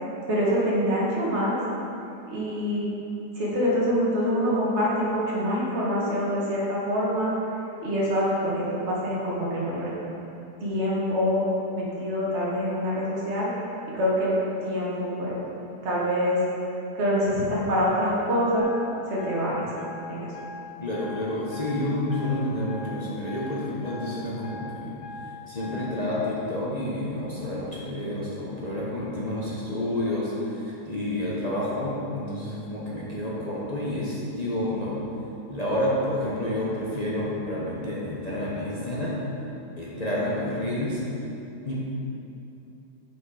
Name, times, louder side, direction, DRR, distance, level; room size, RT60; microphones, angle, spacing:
voice 1, 0.3-1.6 2.3-2.9 3.4-7.3 7.8-9.9 10.6-11.4 11.7-13.5 13.9-14.4 14.6-15.4 15.8-16.4 17.0-18.7 19.1-19.7 20.1-20.3, equal, 40° right, -6 dB, 1.6 m, -25 dB
sound 1, 18.6-26.2, left 4 dB, 65° left, 1.2 m, -42 dB
voice 2, 20.8-25.0 25.5-35.0 35.5-39.1 39.8-41.0 41.6-41.8, left 1 dB, 35° left, -7 dB, 0.6 m, -29 dB
6.2 x 5.2 x 4.8 m, 2.8 s
omnidirectional pair, 1.9 m